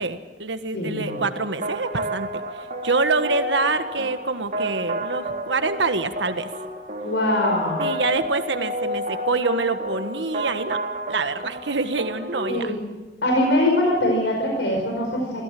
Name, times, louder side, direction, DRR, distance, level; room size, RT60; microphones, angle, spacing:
voice 1, 0.0-2.3 2.5-6.5 7.8-10.8 11.1-12.7, right 3 dB, 75° right, 9 dB, 1.5 m, -26 dB
voice 2, 0.7-1.2 7.0-7.8 12.5-12.7 13.2-15.4, left 1 dB, 80° left, 0 dB, 5.0 m, -22 dB
sound 1, 1.1-12.7, equal, 50° right, 2.6 m, -30 dB
26.0 x 16.0 x 7.7 m, 1.3 s
head